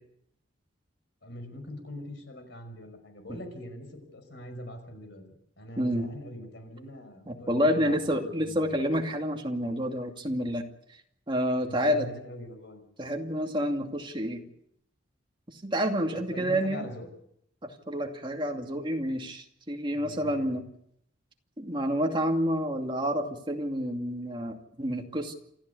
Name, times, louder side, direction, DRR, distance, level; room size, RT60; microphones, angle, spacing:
voice 1, 1.2-3.9 4.1-5.3 5.6-8.9 10.2-10.4 11.6-12.8 16.3-17.1 19.9-20.5, left 1 dB, 65° left, 7 dB, 5.5 m, -43 dB
voice 2, 5.8-6.1 7.3-10.6 11.3-12.1 13.0-14.4 15.6-16.9 17.6-20.6 21.6-25.3, equal, 25° right, 3 dB, 2.4 m, -29 dB
28.0 x 13.5 x 8.4 m, 0.74 s
head